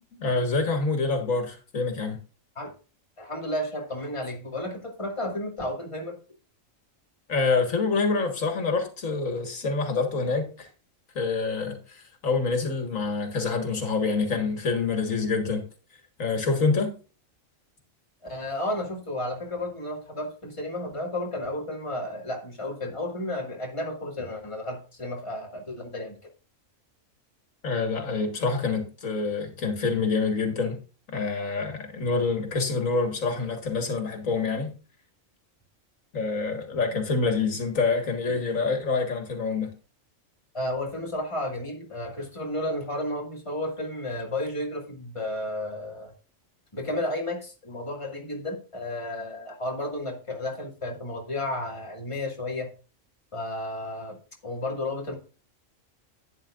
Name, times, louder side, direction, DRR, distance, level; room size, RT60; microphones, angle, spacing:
voice 1, 0.0-2.2 7.3-10.7 11.2-15.6 16.2-17.0 27.6-30.8 31.1-34.7 36.1-39.7, left 4 dB, 90° left, 2.1 m, -26 dB
voice 2, 3.2-6.2 18.2-26.2 40.5-46.1 46.7-52.7 53.3-54.2 54.4-55.2, left 1 dB, 25° left, 2.3 m, -32 dB
11.5 x 9.6 x 2.5 m
omnidirectional pair, 1.4 m